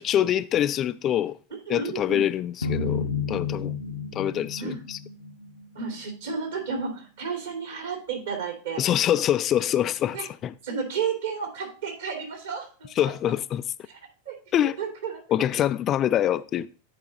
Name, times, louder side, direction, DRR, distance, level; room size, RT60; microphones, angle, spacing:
voice 1, 0.0-1.4 1.7-3.7 4.1-5.0 8.8-10.5 13.0-13.6 14.5-14.8 15.3-16.8, left 11 dB, 30° left, 0.3 m, -25 dB
voice 2, 1.7-2.2 4.6-4.8 5.7-8.8 10.1-10.2 10.6-13.1 13.9-14.0 14.3-14.4 14.8-15.2, right 6 dB, 60° right, 2.7 m, -32 dB
sound 1, 2.6-5.8, left 5 dB, 75° left, 0.7 m, -31 dB
9.2 x 4.9 x 3.9 m
figure-of-eight pair, 90°, 0 cm